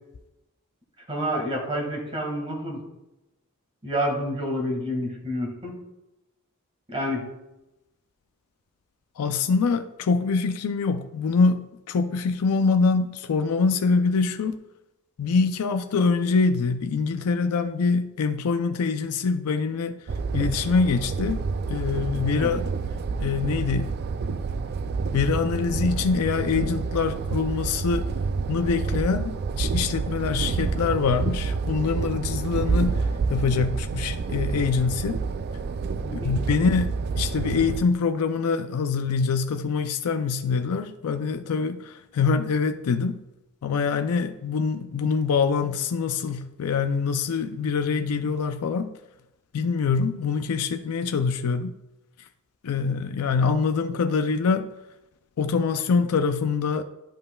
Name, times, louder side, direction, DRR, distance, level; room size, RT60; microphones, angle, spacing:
voice 1, 1.1-2.8 3.8-5.8 6.9-7.3 22.4-22.5 36.0-36.4, equal, 25° right, 0 dB, 1.7 m, -28 dB
voice 2, 9.2-14.6 15.2-20.0 20.3-21.4 21.7-22.6 23.2-23.9 25.1-28.1 28.5-35.2 36.1-43.2 43.6-48.9 49.5-51.7 52.6-54.7 55.4-56.8, left 5 dB, 80° left, 8 dB, 0.4 m, -24 dB
sound 1, 20.1-37.8, right 4 dB, 45° right, 0.3 m, -28 dB
11.5 x 5.4 x 2.3 m, 0.95 s
head